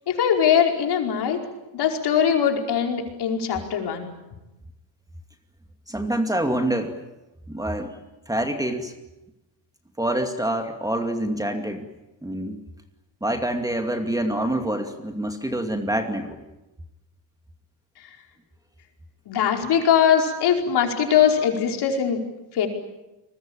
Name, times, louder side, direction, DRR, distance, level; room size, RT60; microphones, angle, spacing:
voice 1, 0.1-1.4 1.7-4.1 19.3-22.2 22.5-22.7, left 8 dB, 55° left, 3 dB, 5.0 m, -21 dB
voice 2, 5.9-7.0 7.5-8.0 8.3-8.9 10.0-11.9 12.2-12.6 13.2-16.4, right 1 dB, 5° right, 5 dB, 2.4 m, -26 dB
29.0 x 21.5 x 8.9 m, 0.97 s
cardioid pair, 125°, 47 cm